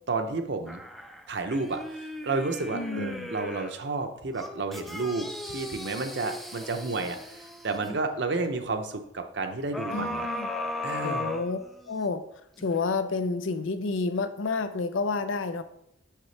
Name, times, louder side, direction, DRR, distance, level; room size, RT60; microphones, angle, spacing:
voice 1, 0.1-0.8 1.3-10.3 10.8-11.3, right 3 dB, 60° right, 6 dB, 0.7 m, -31 dB
sound 1, 0.7-3.8 4.3-8.0 9.7-12.1 12.6-12.7, left 1 dB, ahead, 0.4 m, -37 dB
voice 2, 2.7-3.3 9.9-10.5 11.0-11.6 11.9-12.2 12.6-15.6, left 4 dB, 85° left, 10 dB, 0.6 m, -30 dB
6.6 x 5.8 x 3.2 m, 0.75 s
head